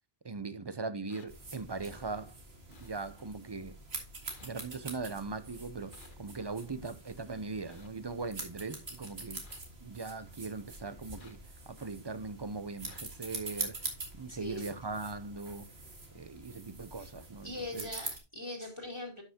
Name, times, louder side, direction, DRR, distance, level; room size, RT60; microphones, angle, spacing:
voice 1, 0.2-2.3 2.8-3.8 4.4-9.4 9.8-11.4 11.7-13.9 14.1-15.7 16.1-17.9, right 4 dB, 35° right, 0.5 m, -40 dB
sound 1, 1.1-1.3 2.7-2.9 4.3-4.5 5.9-6.1 7.7-7.9 9.4-9.6 11.2-11.4 12.9-13.0, left 5 dB, 55° left, 1.2 m, -57 dB
sound 2, 1.3-18.2, right 2 dB, 85° right, 2.2 m, -45 dB
voice 2, 14.3-14.8 17.0-17.1 17.4-19.2, left 2 dB, 30° left, 2.1 m, -41 dB
11.5 x 5.7 x 2.8 m
omnidirectional pair, 1.0 m